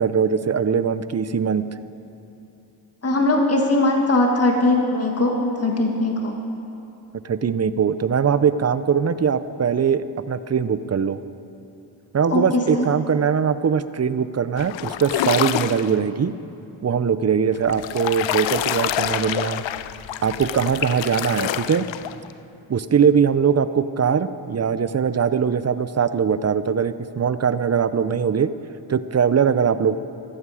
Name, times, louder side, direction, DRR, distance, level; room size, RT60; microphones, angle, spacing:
voice 1, 0.0-1.7 7.2-11.2 12.1-16.3 16.8-19.6 20.2-21.9 22.7-28.5 28.9-30.0, right 7 dB, 35° right, 14 dB, 0.6 m, -21 dB
voice 2, 3.0-6.4 12.3-12.9, left 2 dB, 30° left, 2 dB, 1.7 m, -20 dB
sound 1, 14.6-16.0 17.6-22.3, left 12 dB, 75° left, 0.6 m, -27 dB
15.0 x 14.0 x 4.9 m, 2.9 s
cardioid pair, 75°, 46 cm